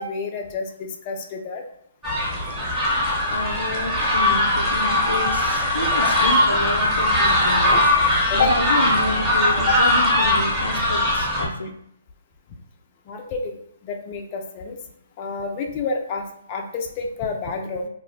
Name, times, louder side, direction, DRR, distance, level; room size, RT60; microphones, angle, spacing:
voice 1, 0.0-1.6 7.7-7.8 8.3-8.5 9.7-9.8 13.1-13.6 13.8-14.8 15.2-17.9, left 4 dB, 35° left, 2 dB, 0.4 m, -28 dB
sound 1, 2.0-11.5, left 1 dB, 5° right, 1.0 m, -20 dB
voice 2, 3.3-7.9 8.3-11.7, left 2 dB, 85° left, 5 dB, 0.5 m, -29 dB
2.4 x 2.0 x 3.8 m, 0.69 s
hypercardioid pair, 140°, 0 cm